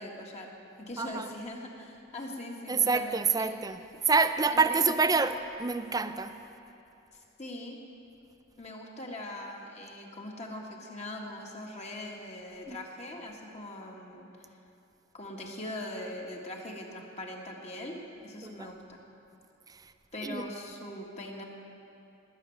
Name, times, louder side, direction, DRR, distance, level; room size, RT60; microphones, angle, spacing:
voice 1, 0.0-3.5 4.5-4.9 7.4-7.8 8.6-14.5 15.1-19.0 20.1-21.4, left 1 dB, 35° left, 0 dB, 1.7 m, -41 dB
voice 2, 1.0-1.3 2.7-6.4 12.7-12.8 18.4-18.7 19.7-19.9 20.2-20.4, right 4 dB, 20° right, 10 dB, 0.5 m, -27 dB
19.0 x 6.8 x 9.1 m, 2.8 s
head